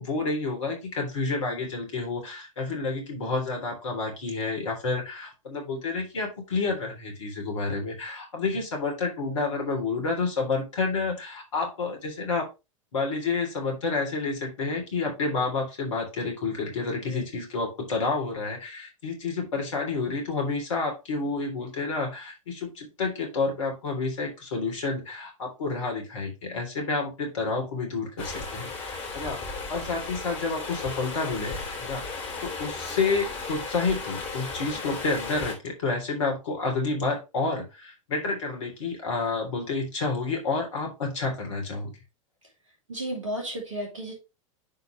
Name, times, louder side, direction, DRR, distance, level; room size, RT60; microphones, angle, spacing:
voice 1, 0.0-12.5 12.9-41.9, left 3 dB, 60° left, 3.4 m, -29 dB
Stream, 28.2-35.5, left 4 dB, 35° left, 3.2 m, -35 dB
voice 2, 42.9-44.1, equal, 70° right, 2.6 m, -33 dB
11.0 x 4.2 x 3.2 m
figure-of-eight pair, 90°, 17 cm